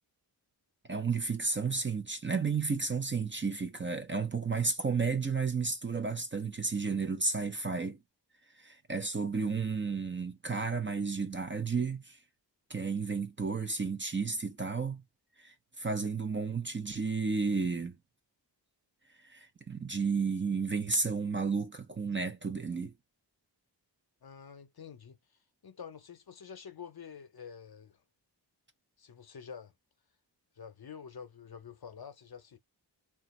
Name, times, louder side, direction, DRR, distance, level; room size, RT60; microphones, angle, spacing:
voice 1, 0.9-8.0 8.6-12.2 12.7-15.0 15.4-18.0 19.2-22.9, right 4 dB, 30° right, 0.5 m, -32 dB
voice 2, 24.2-25.2 25.6-28.0 29.0-29.7 30.6-32.6, left 7 dB, 55° left, 0.6 m, -48 dB
2.5 x 2.3 x 4.0 m
wide cardioid pair, 70°, 44 cm